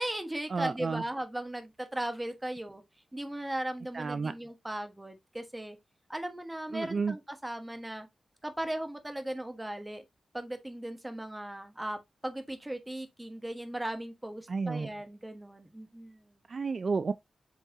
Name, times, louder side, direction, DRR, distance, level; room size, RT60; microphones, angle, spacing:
voice 1, 0.0-2.8 3.1-5.8 6.1-8.1 8.4-10.0 10.3-16.4, right 1 dB, 10° right, 1.3 m, -37 dB
voice 2, 0.5-1.0 3.9-4.3 6.7-7.1 14.5-14.9 16.5-17.1, right 4 dB, 45° right, 0.4 m, -31 dB
8.0 x 4.5 x 2.7 m
wide cardioid pair, 135°, 0 cm